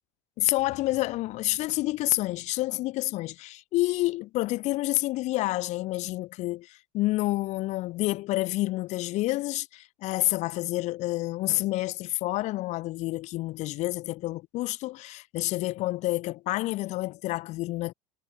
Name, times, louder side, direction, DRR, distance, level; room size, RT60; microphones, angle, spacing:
voice 1, 0.4-17.9, left 18 dB, 55° left, 3.1 m, -29 dB
supercardioid pair, 105°, 14 cm